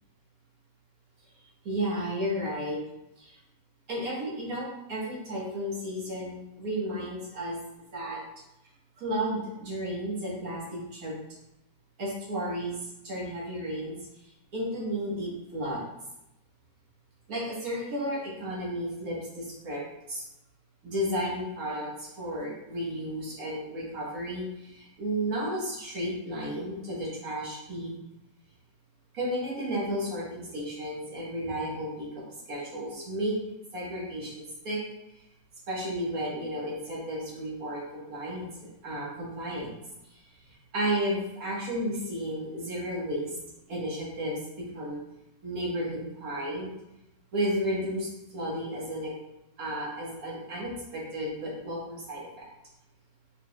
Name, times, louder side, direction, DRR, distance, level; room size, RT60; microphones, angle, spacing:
voice 1, 1.7-2.8 3.2-3.4 3.9-7.6 7.9-8.2 9.0-11.1 12.0-12.8 13.0-14.0 14.5-15.8 17.3-19.8 20.1-20.2 20.8-27.9 29.1-32.2 32.5-33.4 33.7-34.8 35.7-39.7 40.5-43.3 43.7-44.4 44.8-45.0 45.4-46.7 47.3-49.1 49.6-52.5, equal, 65° right, -4 dB, 1.7 m, -33 dB
4.7 x 4.1 x 2.2 m, 0.89 s
omnidirectional pair, 1.6 m